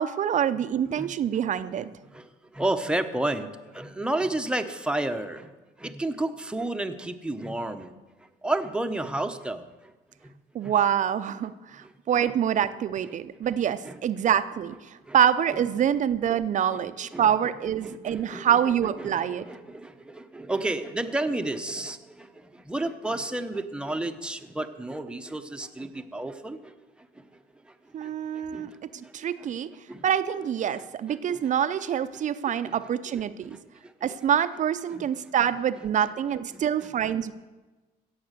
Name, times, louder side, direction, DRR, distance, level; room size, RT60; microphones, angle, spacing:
voice 1, 0.0-1.9 10.5-14.7 15.1-19.5 27.9-29.7 30.0-33.6 34.0-37.3, right 9 dB, 45° right, 13 dB, 0.6 m, -26 dB
voice 2, 2.0-5.5 5.8-7.9 8.4-9.9 10.2-10.7 11.8-11.9 12.2-12.3 13.4-13.5 13.8-14.0 14.9-15.2 15.5-15.6 16.3-16.4 16.7-16.8 17.1-17.4 17.7-27.3 27.6-29.5 29.9-30.0 30.8-31.5 32.1-34.2 34.9-35.3 36.5-37.3, right 2 dB, 5° right, 7 dB, 0.9 m, -33 dB
16.5 x 7.2 x 6.7 m, 1.2 s
cardioid pair, 110°, 17 cm